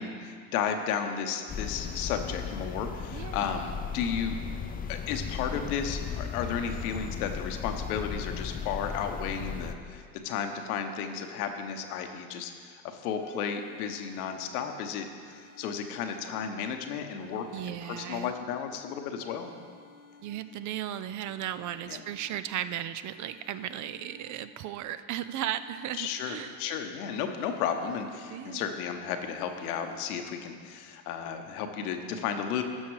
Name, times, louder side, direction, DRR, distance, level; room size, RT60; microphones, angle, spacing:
voice 1, 0.0-4.3 4.9-19.5 21.9-22.0 26.0-32.6, left 7 dB, 80° left, 6 dB, 1.0 m, -33 dB
sound 1, 1.5-9.7, left 6 dB, 20° left, 0.5 m, -36 dB
voice 2, 3.1-3.5 17.5-18.3 20.2-26.6 28.3-28.7, right 11 dB, 45° right, 13 dB, 0.5 m, -36 dB
sound 2, 13.2-14.8 15.2-16.8 17.2-18.8 19.2-20.8 21.2-22.7 23.2-24.7 25.2-26.7 27.2-28.7 29.2-30.0, left 3 dB, 20° right, 2.2 m, -56 dB
12.0 x 6.4 x 4.7 m, 2.1 s
hypercardioid pair, 85°, 44 cm